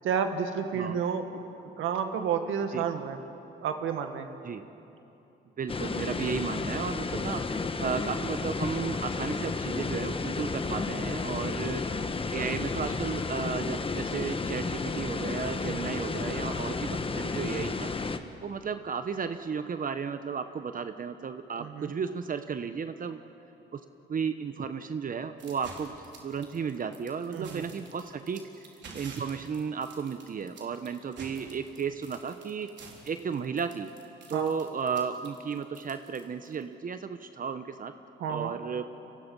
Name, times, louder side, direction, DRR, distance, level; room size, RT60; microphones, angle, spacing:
voice 1, 0.0-1.4 1.8-3.2 3.6-4.3 15.7-15.9 21.6-21.9 27.3-27.7 34.3-34.6 38.2-38.5, right 7 dB, 85° right, 6 dB, 1.9 m, -31 dB
voice 2, 5.6-7.4 7.8-11.8 12.3-17.9 18.4-23.2 23.7-23.8 24.1-25.9 26.2-28.7 28.9-32.7 33.0-33.9 34.3-37.9 38.3-38.8, right 6 dB, 45° right, 9 dB, 1.0 m, -34 dB
sound 1, 5.7-18.2, left 4 dB, 25° left, 1.3 m, -32 dB
sound 2, 25.4-36.6, right 4 dB, 65° right, 4.0 m, -49 dB
29.5 x 24.5 x 5.5 m, 2.9 s
cardioid pair, 90°, 20 cm